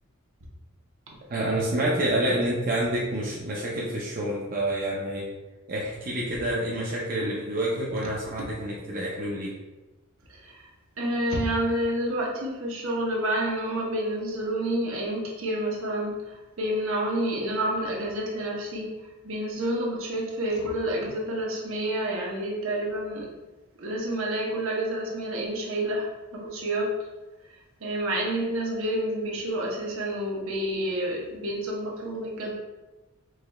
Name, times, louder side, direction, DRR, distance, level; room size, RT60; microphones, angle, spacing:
voice 1, 1.3-5.2 5.7-9.5, right 1 dB, 40° right, -5 dB, 0.5 m, -28 dB
voice 2, 10.3-10.6 11.0-18.9 19.2-23.3 23.8-26.9 27.8-32.5, right 1 dB, 65° right, -2 dB, 0.9 m, -29 dB
4.7 x 3.1 x 2.3 m, 1.2 s
head